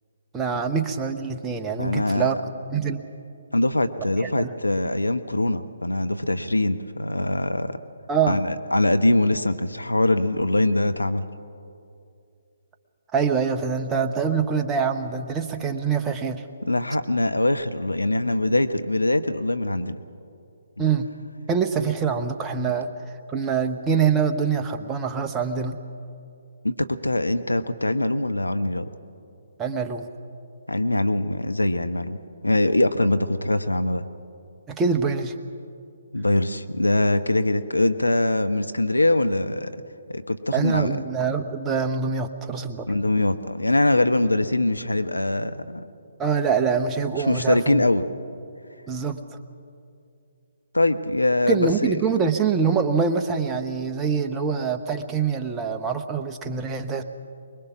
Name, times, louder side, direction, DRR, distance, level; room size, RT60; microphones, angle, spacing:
voice 1, 0.3-2.4 2.7-3.0 4.2-4.5 8.1-8.4 13.1-16.4 20.8-21.1 21.5-22.9 23.3-25.8 29.6-30.1 34.7-35.3 40.5-42.9 46.2-47.8 48.9-49.4 51.5-57.0, right 6 dB, 15° right, 6 dB, 1.0 m, -24 dB
voice 2, 1.8-2.3 3.5-7.8 8.3-11.3 16.7-20.0 26.6-28.9 30.7-32.2 32.4-34.0 36.1-39.8 40.1-41.0 42.9-45.8 47.3-48.0 50.7-52.0, left 1 dB, 90° left, 9 dB, 0.9 m, -23 dB
24.5 x 21.0 x 6.1 m, 2.5 s
figure-of-eight pair, 135°, 0 cm